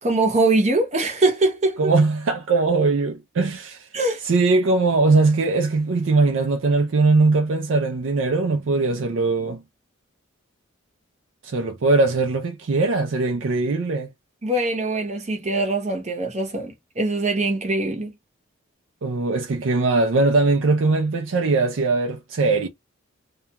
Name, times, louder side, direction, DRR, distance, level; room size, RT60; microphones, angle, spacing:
voice 1, 0.0-1.8 3.9-4.2 14.4-18.1, right 2 dB, 30° right, 0.7 m, -22 dB
voice 2, 1.8-3.9 4.2-9.6 11.4-14.1 19.0-22.7, right 3 dB, 60° right, 0.4 m, -20 dB
2.4 x 2.2 x 2.8 m
head